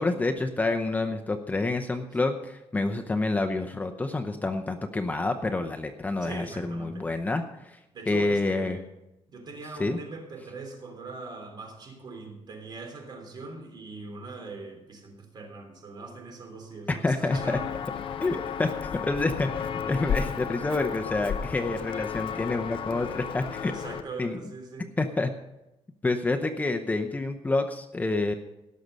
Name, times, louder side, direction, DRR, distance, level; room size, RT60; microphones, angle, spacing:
voice 1, 0.0-7.8 8.1-8.8 9.8-10.0 16.9-17.6 18.2-23.7 24.2-24.4 25.0-25.3 26.0-28.3, left 2 dB, 15° left, 5 dB, 0.8 m, -28 dB
voice 2, 6.2-7.1 7.9-8.9 9.3-17.7 23.7-24.9, right 3 dB, 40° right, 3 dB, 3.5 m, -41 dB
Walk footsteps, 17.3-24.0, left 7 dB, 55° left, 0.8 m, -33 dB
18.0 x 6.6 x 5.4 m, 0.92 s
cardioid pair, 130°, 11 cm